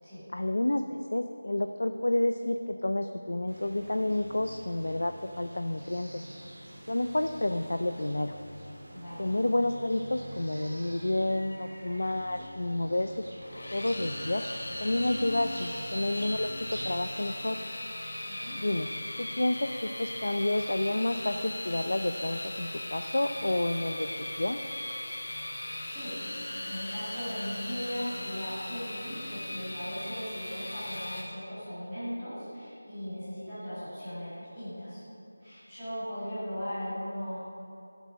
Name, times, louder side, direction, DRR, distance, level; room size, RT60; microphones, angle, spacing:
voice 1, 0.3-6.3 6.9-8.3 9.2-13.1 13.7-14.4 14.8-16.5 16.8-17.6 18.6-18.9 19.2-24.1 24.4-24.6, left 1 dB, 60° left, 7 dB, 0.5 m, -30 dB
sound 1, 3.5-17.1, equal, 60° right, 3.0 m, -45 dB
voice 2, 8.9-9.3 18.2-18.6 25.4-35.0 35.4-37.4, equal, 10° right, -18 dB, 2.7 m, -38 dB
sound 2, 13.4-31.2, left 1 dB, 40° left, 1.4 m, -38 dB
15.5 x 8.1 x 5.2 m, 2.8 s
figure-of-eight pair, 180°, 0 cm